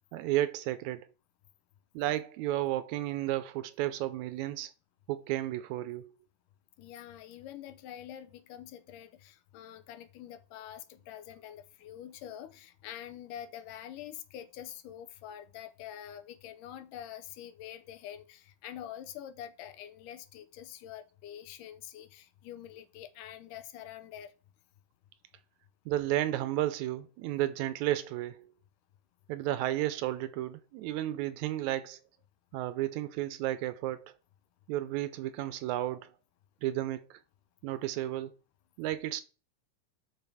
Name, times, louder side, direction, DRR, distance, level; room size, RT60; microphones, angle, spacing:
voice 1, 0.1-1.1 1.9-4.7 5.1-6.1 25.9-28.4 29.3-32.0 32.5-34.1 34.7-36.1 36.6-37.2 37.6-38.3 38.8-39.2, right 14 dB, 80° right, 1.8 m, -32 dB
voice 2, 6.8-24.3, left 11 dB, 85° left, 2.4 m, -46 dB
6.8 x 6.0 x 4.9 m
omnidirectional pair, 3.7 m